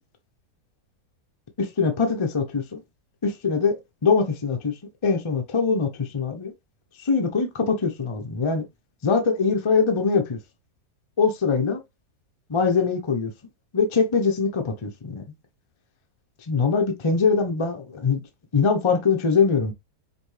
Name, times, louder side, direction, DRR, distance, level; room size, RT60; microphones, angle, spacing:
voice 1, 1.6-2.8 3.2-6.5 7.0-8.7 9.0-10.4 11.2-11.8 12.5-13.3 13.7-15.2 16.5-18.2 18.5-19.7, left 5 dB, 35° left, 0.4 m, -23 dB
5.1 x 2.7 x 3.2 m
omnidirectional pair, 1.8 m